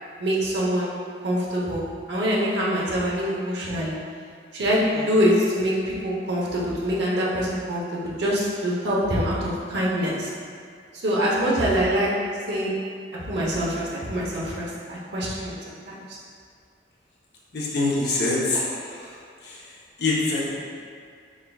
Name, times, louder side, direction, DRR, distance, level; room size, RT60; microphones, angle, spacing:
voice 1, 0.2-0.9 1.2-4.0 4.5-10.3 11.0-12.1 12.5-12.7 13.2-15.5 15.9-16.2, equal, 75° right, -5 dB, 0.9 m, -24 dB
voice 2, 17.5-18.7 20.0-20.5, left 2 dB, 65° left, -5 dB, 0.8 m, -23 dB
4.2 x 3.7 x 2.3 m, 2.2 s
head